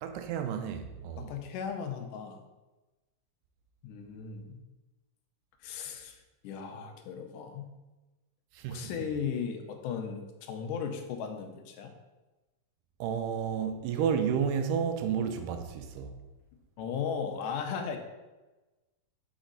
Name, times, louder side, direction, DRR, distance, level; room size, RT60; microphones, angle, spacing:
voice 1, 0.0-1.3 8.5-8.9 13.0-16.1, right 7 dB, 85° right, 2.2 m, -31 dB
voice 2, 1.2-2.4 3.8-4.6 5.6-6.2 6.4-7.7 8.7-11.9 16.8-18.0, left 7 dB, 80° left, 2.2 m, -36 dB
6.1 x 4.1 x 3.8 m
omnidirectional pair, 3.6 m